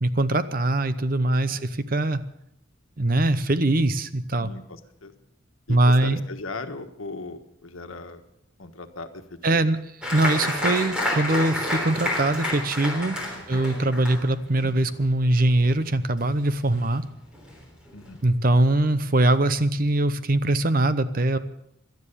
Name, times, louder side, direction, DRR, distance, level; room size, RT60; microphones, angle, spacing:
voice 1, 0.0-2.2 3.0-4.5 5.7-6.2 9.4-9.8 10.1-13.2 13.5-17.0 18.2-21.4, right 2 dB, 45° right, 13 dB, 0.8 m, -22 dB
voice 2, 4.4-5.1 5.7-8.2 8.6-9.7 13.3-13.7 17.9-18.2, left 3 dB, 85° left, 7 dB, 1.5 m, -38 dB
Applause, 10.0-17.1 17.3-18.1 18.5-18.6 18.9-19.3, left 1 dB, 5° right, 3.5 m, -30 dB
17.0 x 12.0 x 6.8 m, 0.79 s
head